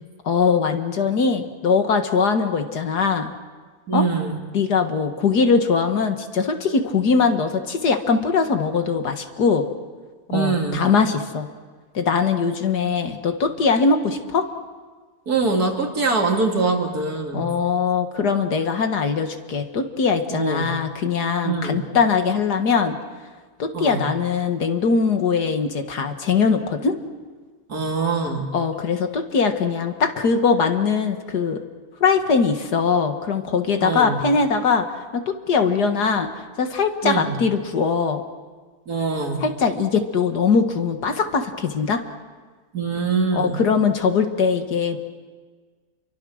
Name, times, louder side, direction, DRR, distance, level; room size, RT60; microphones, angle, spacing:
voice 1, 0.2-3.3 3.9-4.0 4.5-9.7 10.3-11.5 11.9-14.5 17.3-23.0 23.6-27.0 28.5-31.6 32.0-36.3 36.6-38.2 39.4-42.0 43.3-45.0, left 5 dB, 75° left, 6 dB, 2.1 m, -21 dB
voice 2, 3.9-4.4 10.3-10.9 15.3-17.5 20.3-20.7 21.4-21.8 23.7-24.1 27.7-28.4 33.8-34.2 37.0-37.4 38.9-39.4 42.7-43.6, right 4 dB, 65° right, 1 dB, 3.3 m, -23 dB
30.0 x 23.5 x 6.4 m, 1.5 s
omnidirectional pair, 1.7 m